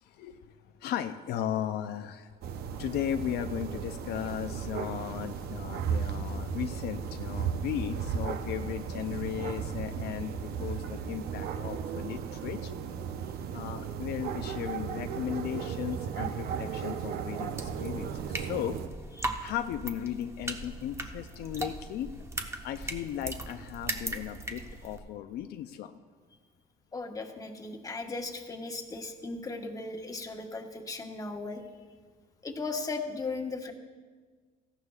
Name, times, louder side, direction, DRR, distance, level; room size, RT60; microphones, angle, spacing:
voice 1, 0.0-2.3 2.8-12.8 13.5-18.8 19.4-22.1 22.6-26.0, left 10 dB, 75° left, 7 dB, 0.6 m, -36 dB
sound 1, 2.4-18.9, right 7 dB, 70° right, 0.8 m, -35 dB
sound 2, 17.6-25.0, right 2 dB, 15° right, 0.9 m, -38 dB
voice 2, 26.9-31.6 32.4-33.7, left 3 dB, 20° left, 2 dB, 1.3 m, -37 dB
17.5 x 14.5 x 2.4 m, 1.5 s
cardioid pair, 110°, 17 cm